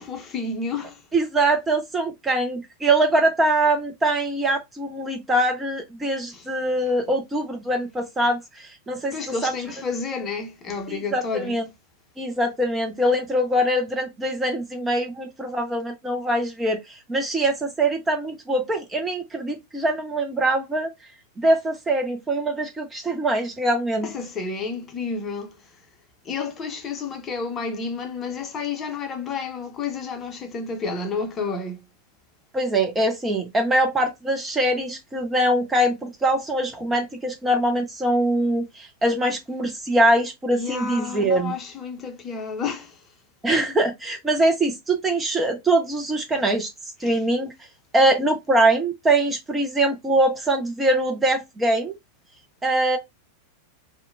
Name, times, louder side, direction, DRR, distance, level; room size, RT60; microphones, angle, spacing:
voice 1, 0.0-1.0 6.3-6.5 9.1-11.6 24.0-25.7 26.2-31.8 40.5-43.0 47.0-47.2, left 4 dB, 25° left, 0.7 m, -30 dB
voice 2, 1.1-9.5 10.9-11.7 12.2-20.9 21.4-24.1 32.5-41.5 43.4-46.7 47.0-47.5 47.9-51.9 52.6-53.0, right 1 dB, 15° right, 0.5 m, -23 dB
2.7 x 2.1 x 2.5 m
figure-of-eight pair, 90°, 0 cm